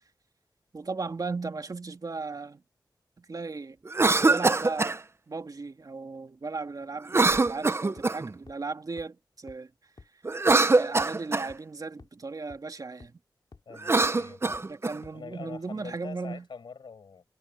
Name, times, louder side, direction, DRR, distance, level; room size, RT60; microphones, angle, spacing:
voice 1, 0.7-2.6 3.2-3.8 4.2-9.7 10.7-13.2 14.7-16.5, right 4 dB, 50° right, 2.6 m, -36 dB
Cough, 3.9-5.0 7.1-8.3 10.2-11.5 13.7-15.0, right 3 dB, 35° right, 0.7 m, -23 dB
sound 1, 7.5-7.6 8.0-8.1 8.5-8.6 9.0-9.1 9.5-9.6 10.0-10.1 10.5-10.6 11.0-11.1 11.5-11.6 12.0-12.1 12.5-12.6 13.0-13.1 13.5-13.6 14.0-14.1 14.5-14.6 15.0-15.1, left 4 dB, 60° left, 2.9 m, -49 dB
voice 2, 13.7-14.7 15.1-17.2, left 5 dB, 80° left, 5.4 m, -44 dB
wide cardioid pair, 75°, 8 cm